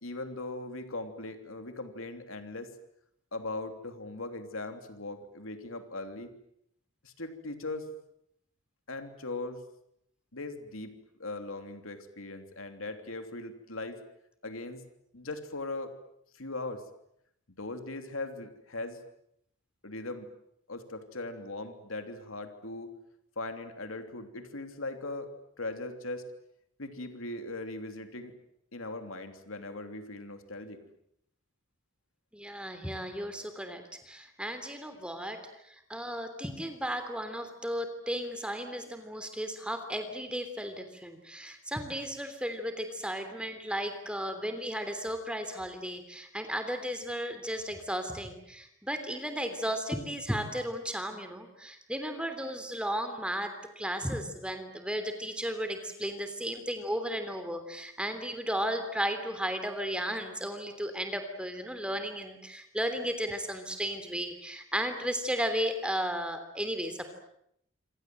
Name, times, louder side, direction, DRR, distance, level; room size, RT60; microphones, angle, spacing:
voice 1, 0.0-2.7 3.3-6.3 7.0-7.9 8.9-9.6 10.3-14.0 14.4-14.8 15.1-15.9 16.3-16.8 17.6-19.0 19.8-20.3 20.7-23.0 23.4-25.3 25.6-26.2 26.8-28.3 28.7-30.8, left 2 dB, 85° left, 7 dB, 3.2 m, -39 dB
voice 2, 32.3-67.1, equal, 5° right, 7 dB, 3.2 m, -34 dB
27.0 x 26.5 x 7.8 m, 0.75 s
head